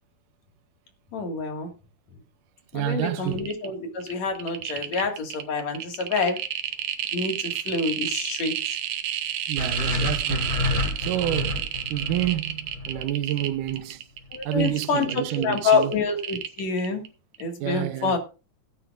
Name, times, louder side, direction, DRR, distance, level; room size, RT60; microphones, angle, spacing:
voice 1, 1.1-1.7 2.7-6.4 7.1-8.6 14.3-17.0 17.4-18.2, left 4 dB, 60° left, 3.0 m, -27 dB
voice 2, 2.7-3.5 9.5-10.5 11.0-14.0 14.5-16.0 17.6-18.2, right 13 dB, 90° right, 2.4 m, -29 dB
sound 1, 2.9-3.0 3.3-3.7 4.0-17.1 17.3-17.4, right 10 dB, 65° right, 2.1 m, -31 dB
sound 2, 9.6-13.7, left 2 dB, 20° left, 3.3 m, -29 dB
17.5 x 9.3 x 2.4 m
omnidirectional pair, 3.6 m